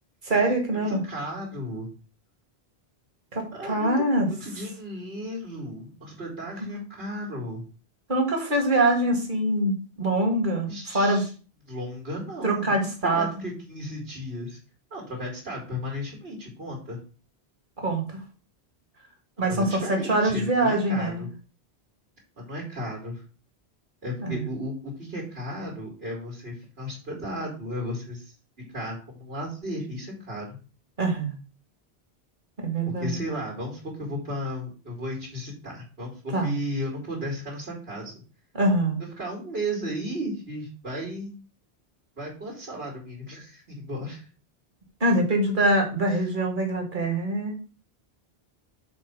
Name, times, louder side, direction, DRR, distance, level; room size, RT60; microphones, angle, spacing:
voice 1, 0.2-1.0 3.3-4.3 6.6-6.7 8.1-11.2 12.4-13.3 17.8-18.0 19.4-21.2 24.2-24.4 31.0-31.3 32.6-33.2 36.3-36.5 38.5-39.0 45.0-47.6, right 1 dB, 50° right, 1 dB, 2.1 m, -24 dB
voice 2, 0.9-1.9 3.5-3.9 4.3-7.6 10.7-11.3 11.7-12.8 13.0-14.6 14.9-17.0 19.5-21.3 22.4-23.2 24.0-28.3 28.7-30.6 32.8-38.1 39.2-41.3 42.2-44.2 46.1-46.4, equal, 70° right, -2 dB, 2.8 m, -34 dB
6.6 x 4.4 x 6.0 m, 0.36 s
omnidirectional pair, 1.1 m